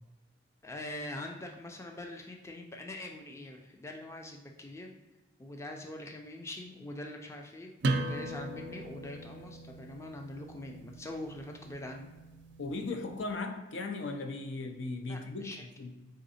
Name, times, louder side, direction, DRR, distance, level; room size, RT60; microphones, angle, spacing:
voice 1, 0.6-4.9 5.4-12.1 15.1-15.6, left 1 dB, 15° left, 2 dB, 0.3 m, -43 dB
sound 1, 7.8-13.2, right 2 dB, 65° right, 0.4 m, -38 dB
voice 2, 12.6-15.5 15.8-15.9, left 3 dB, 75° left, 5 dB, 0.6 m, -37 dB
3.8 x 3.3 x 4.1 m, 1.1 s
head